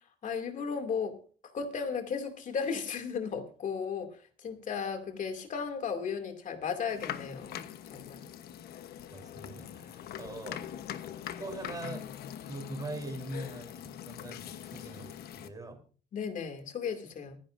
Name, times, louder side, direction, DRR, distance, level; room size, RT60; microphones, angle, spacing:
voice 1, 0.2-1.2 1.5-7.6 7.9-8.3 16.1-17.4, left 6 dB, 50° left, 2.5 m, -35 dB
sound 1, 6.9-15.5, left 10 dB, 70° left, 1.1 m, -42 dB
voice 2, 9.1-10.6 11.4-12.1 12.5-15.8, right 2 dB, 20° right, 3.6 m, -42 dB
24.5 x 10.5 x 2.6 m
cardioid pair, 110°, 17 cm